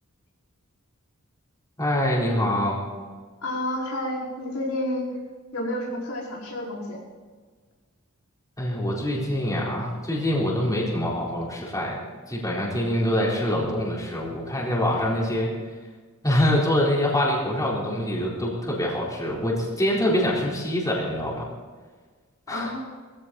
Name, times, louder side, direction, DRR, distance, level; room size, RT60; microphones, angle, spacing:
voice 1, 1.8-2.8 8.6-12.0 12.3-15.5 16.2-21.5 22.5-22.7, left 1 dB, 15° left, -4 dB, 4.1 m, -25 dB
voice 2, 3.4-5.1 5.5-7.0 22.5-22.8, left 1 dB, 90° left, -4 dB, 5.3 m, -30 dB
20.5 x 15.5 x 4.2 m, 1.5 s
head